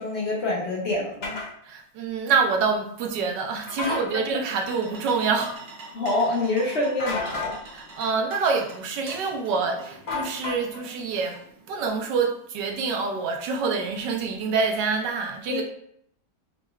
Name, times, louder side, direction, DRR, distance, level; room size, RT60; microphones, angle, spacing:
voice 1, 0.0-1.4 3.8-4.3 5.9-7.6 15.5-15.6, left 2 dB, 70° left, -2 dB, 0.6 m, -26 dB
sound 1, 1.2-1.5 3.7-4.1 7.0-7.6 10.1-10.9, left 4 dB, 45° left, 1.0 m, -31 dB
voice 2, 1.7-5.6 7.7-11.4 11.7-15.6, right 5 dB, 75° right, 3 dB, 1.3 m, -26 dB
sound 2, 4.1-12.0, right 2 dB, 55° right, 1.3 m, -45 dB
5.7 x 2.2 x 3.1 m, 0.69 s
omnidirectional pair, 2.0 m